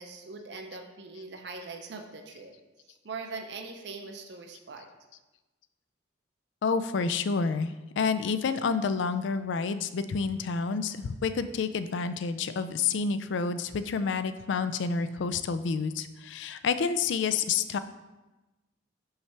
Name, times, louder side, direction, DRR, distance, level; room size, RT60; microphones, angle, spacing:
voice 1, 0.0-2.5 2.8-4.9, right 4 dB, 60° right, 3 dB, 0.6 m, -41 dB
voice 2, 6.6-17.8, left 5 dB, 70° left, 11 dB, 0.3 m, -29 dB
5.6 x 3.3 x 5.7 m, 1.1 s
head